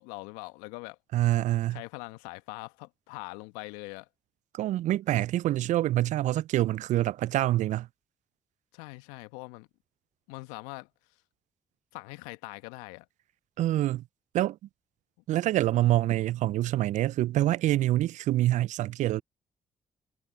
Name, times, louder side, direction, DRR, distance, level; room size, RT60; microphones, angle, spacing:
voice 1, 0.0-1.0 1.7-4.1 8.7-9.7 10.3-11.2 11.9-13.1, left 25 dB, 80° left, 1.5 m, -42 dB
voice 2, 1.1-1.8 4.5-7.9 13.6-14.0 14.3-14.6 15.3-19.2, right 14 dB, 65° right, 0.5 m, -26 dB
hypercardioid pair, 40°, 13 cm